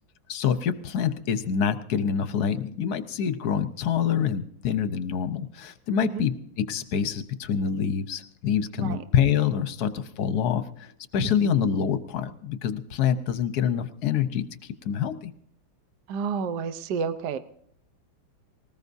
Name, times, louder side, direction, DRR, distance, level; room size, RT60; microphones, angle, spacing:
voice 1, 0.3-6.3 6.7-15.3, left 8 dB, 55° left, 11 dB, 1.2 m, -26 dB
voice 2, 16.1-17.4, right 6 dB, 60° right, 10 dB, 1.3 m, -30 dB
20.0 x 19.5 x 2.7 m, 0.65 s
omnidirectional pair, 2.4 m